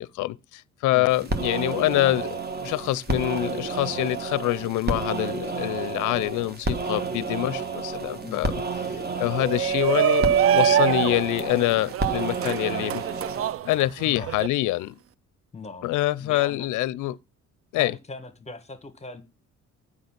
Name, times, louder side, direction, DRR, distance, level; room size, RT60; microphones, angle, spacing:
voice 1, 0.0-8.6 9.2-13.0 13.6-15.0 15.8-17.2 17.7-17.9, left 16 dB, 80° left, 0.5 m, -25 dB
voice 2, 0.9-1.3 8.2-8.5 14.0-14.3 15.5-15.9 16.2-16.7 17.8-19.2, left 3 dB, 20° left, 1.5 m, -39 dB
sound 1, 1.1-13.5, right 4 dB, 30° right, 1.5 m, -31 dB
Shout, 9.3-14.5, right 10 dB, 50° right, 0.4 m, -24 dB
7.9 x 5.6 x 5.8 m
cardioid pair, 90°, 30 cm